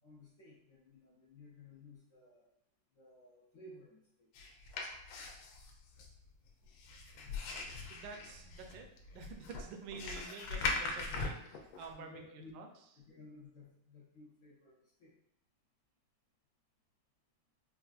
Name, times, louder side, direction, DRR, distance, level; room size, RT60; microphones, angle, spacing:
voice 1, 0.0-2.5 2.9-4.3 12.0-12.5 13.1-15.1, left 2 dB, 70° left, -5 dB, 0.7 m, -56 dB
sound 1, 4.3-11.9, left 3 dB, 90° left, 1.3 m, -41 dB
voice 2, 7.9-12.7, right 5 dB, 75° right, 4 dB, 1.2 m, -49 dB
4.2 x 2.4 x 2.4 m, 0.75 s
omnidirectional pair, 2.1 m